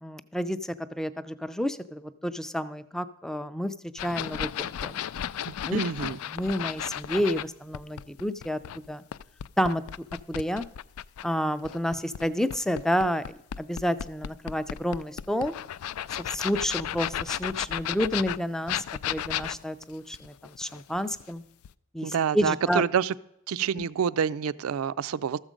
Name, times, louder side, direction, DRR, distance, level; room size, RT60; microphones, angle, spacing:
voice 1, 0.0-3.7 4.0-5.0 5.6-5.8 6.3-8.6 8.9-9.0 9.6-9.8 10.3-10.6 11.2-15.5 16.2-21.4 21.9-22.8 23.8-23.9, equal, ahead, 0.4 m, -30 dB
sound 1, 4.0-7.5 7.7-11.3 11.6-21.3 21.6-21.7, left 10 dB, 85° left, 0.3 m, -34 dB
voice 2, 5.5-6.2 22.0-23.1 23.5-25.4, right 7 dB, 80° right, 0.4 m, -27 dB
13.5 x 7.3 x 5.1 m
head